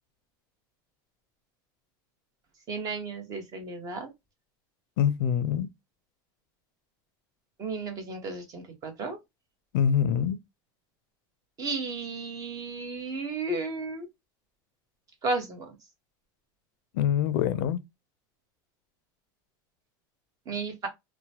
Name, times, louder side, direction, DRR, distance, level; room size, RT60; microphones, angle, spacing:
voice 1, 2.7-4.1 7.6-9.2 11.6-14.1 15.2-15.7 20.5-20.9, right 3 dB, 35° right, 1.0 m, -33 dB
voice 2, 5.0-5.7 9.7-10.4 16.9-17.8, left 9 dB, 85° left, 0.4 m, -25 dB
2.9 x 2.1 x 2.7 m
supercardioid pair, 135°, 11 cm